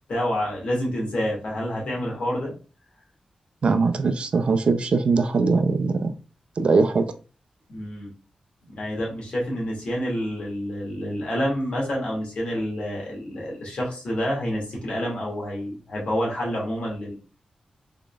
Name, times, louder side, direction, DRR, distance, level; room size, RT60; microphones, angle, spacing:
voice 1, 0.1-2.5 7.7-8.1 8.6-17.2, equal, 60° left, 1.8 m, -28 dB
voice 2, 3.6-6.1 6.6-7.0, right 4 dB, 55° right, 0.4 m, -21 dB
3.8 x 3.7 x 2.3 m
wide cardioid pair, 165°, 2 cm